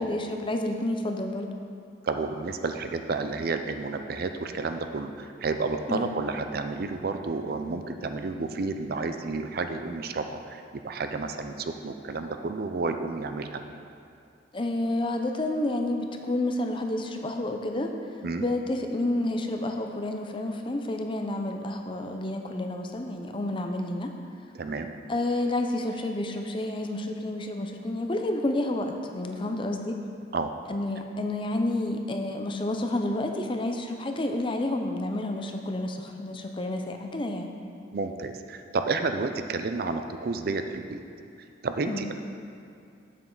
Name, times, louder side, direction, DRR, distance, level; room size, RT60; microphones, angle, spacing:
voice 1, 0.0-1.5 5.9-6.1 14.5-17.9 18.4-24.1 25.1-30.0 30.7-37.5 41.9-42.1, left 1 dB, 25° left, 4 dB, 0.5 m, -30 dB
voice 2, 2.0-13.6 18.2-18.5 24.5-24.9 30.3-30.5 37.9-41.0 41.6-42.1, right 3 dB, 50° right, 7 dB, 0.4 m, -31 dB
8.4 x 7.4 x 3.8 m, 2.5 s
head